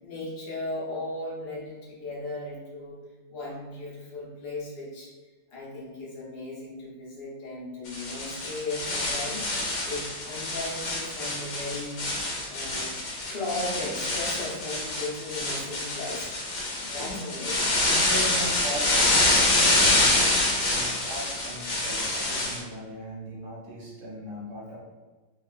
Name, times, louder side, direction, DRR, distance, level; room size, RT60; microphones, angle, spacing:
voice 1, 0.0-3.0 3.3-5.1 5.5-9.4 9.8-12.1 12.5-12.9 13.3-16.3 16.8-17.7, left 2 dB, 85° left, -6 dB, 1.6 m, -36 dB
sound 1, 7.9-22.6, left 2 dB, 60° left, 1.1 m, -26 dB
voice 2, 17.0-17.5 17.8-20.4 20.7-24.8, equal, 70° right, -3 dB, 1.3 m, -38 dB
4.1 x 2.3 x 2.3 m, 1.3 s
omnidirectional pair, 2.0 m